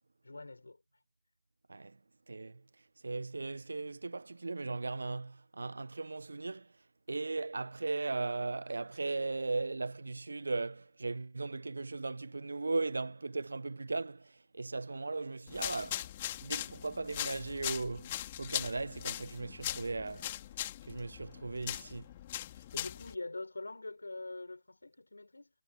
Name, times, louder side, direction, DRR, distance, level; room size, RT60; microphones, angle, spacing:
voice 1, 0.2-0.8 22.5-25.5, left 2 dB, 70° left, 5.7 m, -44 dB
voice 2, 2.3-6.8 7.1-16.1 16.4-20.3 20.8-22.1, right 3 dB, 65° right, 1.2 m, -37 dB
sound 1, 15.5-23.1, left 13 dB, 25° left, 2.7 m, -40 dB
figure-of-eight pair, 155°, 0 cm